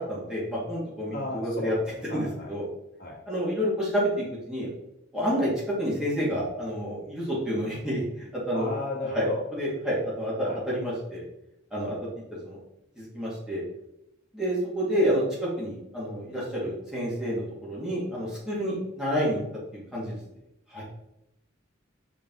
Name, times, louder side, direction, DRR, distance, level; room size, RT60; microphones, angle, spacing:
voice 1, 0.1-1.7 2.1-2.6 3.3-4.7 5.1-8.7 9.1-9.3 9.5-11.2 11.7-12.0 12.3-12.6 13.0-13.6 14.3-19.4 19.9-20.2 20.7-20.8, equal, 5° right, -7 dB, 2.1 m, -29 dB
voice 2, 1.1-2.5 3.0-3.2 8.5-9.4 10.4-10.6, left 2 dB, 50° left, -2 dB, 1.7 m, -34 dB
5.2 x 4.6 x 3.9 m, 0.87 s
head